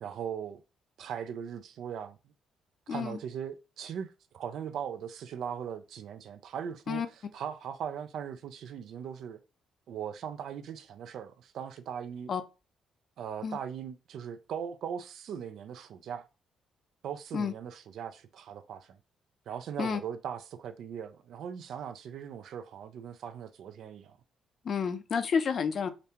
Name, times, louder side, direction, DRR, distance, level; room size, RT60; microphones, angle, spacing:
voice 1, 0.0-0.6 1.0-2.2 2.9-7.0 7.3-9.4 9.9-12.3 13.2-16.3 17.0-19.0 19.5-24.2, right 8 dB, 75° right, 0.4 m, -39 dB
voice 2, 2.9-3.2 6.9-7.1 12.3-12.4 13.4-13.6 17.3-17.5 19.8-20.0 24.6-25.9, left 6 dB, 55° left, 0.5 m, -30 dB
5.0 x 2.2 x 2.8 m
cardioid pair, 90°, 0 cm